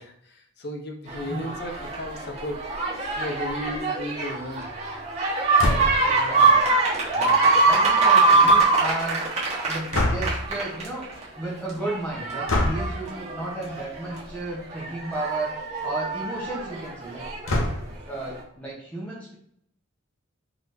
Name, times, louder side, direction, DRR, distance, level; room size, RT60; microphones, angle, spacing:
voice 1, 0.0-4.7, left 1 dB, 55° left, 2 dB, 0.7 m, -35 dB
sound 1, 1.1-11.2 11.7-14.2 14.7-17.5 18.4-18.5, right 3 dB, 35° right, 1.2 m, -23 dB
sound 2, 5.6-6.1 9.9-10.5 12.5-12.9 14.1-14.4 14.8-14.9 15.1-15.2 17.5-18.1, left 1 dB, 80° left, 0.8 m, -25 dB
voice 2, 6.0-6.6 7.1-9.2 9.6-11.1 11.3-17.3 18.1-19.4, right 2 dB, 5° left, -6 dB, 0.9 m, -34 dB
4.0 x 3.1 x 3.2 m, 0.71 s
head